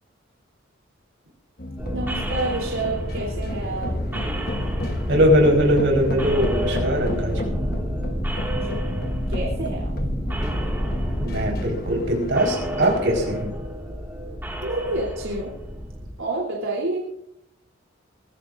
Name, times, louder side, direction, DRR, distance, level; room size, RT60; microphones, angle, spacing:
sound 1, 1.6-13.4, left 1 dB, 50° left, 1.2 m, -33 dB
sound 2, 1.8-16.1, equal, 10° right, 2.1 m, -29 dB
voice 1, 1.9-4.0 8.5-8.8 9.3-9.9 14.6-15.5 16.2-17.0, right 2 dB, 85° right, -3 dB, 3.5 m, -29 dB
voice 2, 5.1-7.6 11.2-13.5, equal, 65° right, 0 dB, 4.6 m, -21 dB
23.0 x 14.0 x 2.6 m, 0.76 s
head